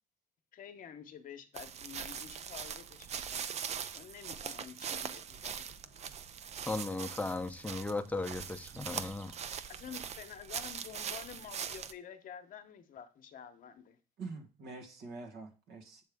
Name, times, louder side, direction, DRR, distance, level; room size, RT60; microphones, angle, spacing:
voice 1, 0.5-3.6 3.9-6.1 9.7-14.0, left 8 dB, 55° left, 0.9 m, -49 dB
sound 1, 1.6-11.9, right 7 dB, 40° right, 0.4 m, -42 dB
voice 2, 6.7-9.3, left 2 dB, 10° left, 0.6 m, -36 dB
voice 3, 14.2-16.0, right 3 dB, 75° right, 1.4 m, -45 dB
7.6 x 3.6 x 3.5 m
cardioid pair, 110°, 17 cm